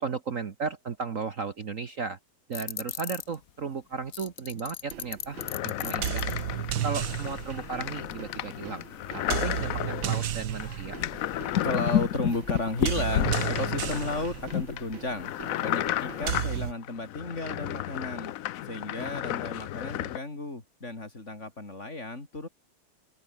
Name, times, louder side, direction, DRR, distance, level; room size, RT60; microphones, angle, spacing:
voice 1, 0.0-2.2 2.5-6.3 6.8-8.8 9.1-11.0, right 5 dB, 45° right, 1.5 m, -35 dB
sound 1, 2.5-3.3 4.1-6.4 8.1-8.2 8.6-8.7 9.8-9.9 10.2-10.3 11.0-14.7, left 10 dB, 55° left, 1.1 m, -30 dB
sound 2, 4.9-16.7, right 10 dB, 75° right, 1.9 m, -34 dB
sound 3, 5.3-20.2, left 13 dB, 75° left, 0.7 m, -34 dB
voice 2, 11.6-15.3 15.6-18.3 18.7-22.5, left 2 dB, 35° left, 4.4 m, -34 dB
open air
omnidirectional pair, 2.1 m